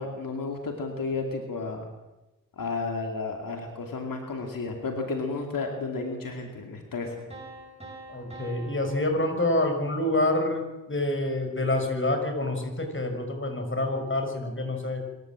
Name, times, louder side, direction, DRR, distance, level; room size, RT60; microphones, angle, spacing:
voice 1, 0.0-1.9 2.6-7.2, left 3 dB, 90° left, 3 dB, 2.6 m, -32 dB
sound 1, 7.3-10.2, right 2 dB, 20° right, 6.8 m, -46 dB
voice 2, 8.1-15.0, left 1 dB, 35° left, 5 dB, 6.3 m, -27 dB
25.5 x 14.5 x 7.7 m, 1.0 s
cardioid pair, 45°, 33 cm